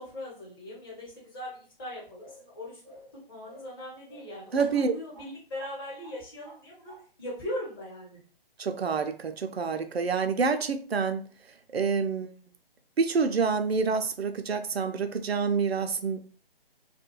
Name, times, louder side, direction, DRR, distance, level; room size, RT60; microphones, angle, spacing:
voice 1, 0.0-2.8 3.1-6.9 7.2-8.2, left 1 dB, 25° left, -5 dB, 1.0 m, -39 dB
sound 1, 2.2-2.5 2.8-3.1 3.5-3.8 4.1-5.3 5.6-5.7 6.0-6.6 6.9-7.0, right 1 dB, 5° left, 0.6 m, -50 dB
voice 2, 4.5-4.9 8.6-11.2 11.7-12.3 13.0-16.2, right 5 dB, 85° right, 7 dB, 0.5 m, -27 dB
2.3 x 2.1 x 3.0 m, 0.41 s
figure-of-eight pair, 145°, 30 cm